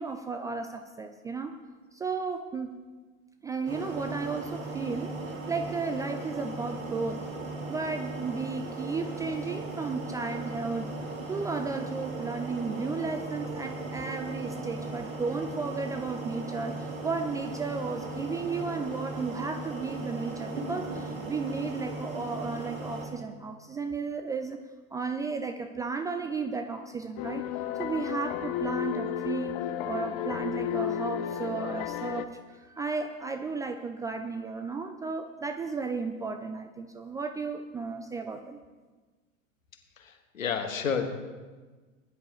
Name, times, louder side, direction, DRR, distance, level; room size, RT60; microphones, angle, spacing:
voice 1, 0.0-1.6 1.9-2.7 3.4-5.2 5.5-7.3 7.7-10.9 11.3-24.6 24.9-27.5 27.8-38.6, right 4 dB, 10° right, 6 dB, 0.3 m, -34 dB
sound 1, 3.7-23.1, right 2 dB, 80° right, 3.2 m, -37 dB
sound 2, 27.2-32.2, left 11 dB, 40° left, 0.8 m, -33 dB
voice 2, 40.0-41.1, left 6 dB, 70° left, 5 dB, 1.7 m, -30 dB
20.0 x 11.0 x 3.1 m, 1.3 s
figure-of-eight pair, 85°, 41 cm